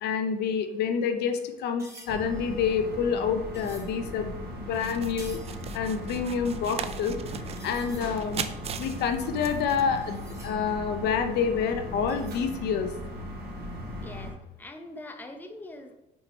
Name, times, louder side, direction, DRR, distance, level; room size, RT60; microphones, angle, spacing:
voice 1, 0.0-5.4 5.7-7.2 7.6-8.4 8.8-12.9, left 6 dB, 75° left, 7 dB, 0.7 m, -28 dB
sound 1, 1.6-4.0 4.6-5.7 5.9-6.0 6.7-6.8 7.0-7.1 7.5-8.2 8.8-11.2 12.1-12.7 13.0-13.3, right 1 dB, 15° right, 2.4 m, -51 dB
sound 2, 2.1-14.3, equal, 70° right, 1.4 m, -38 dB
sound 3, 4.7-10.0, right 7 dB, 40° right, 0.4 m, -39 dB
voice 2, 14.0-15.9, left 2 dB, 10° left, 5 dB, 0.7 m, -43 dB
5.5 x 4.5 x 4.2 m, 0.93 s
cardioid pair, 110°, 17 cm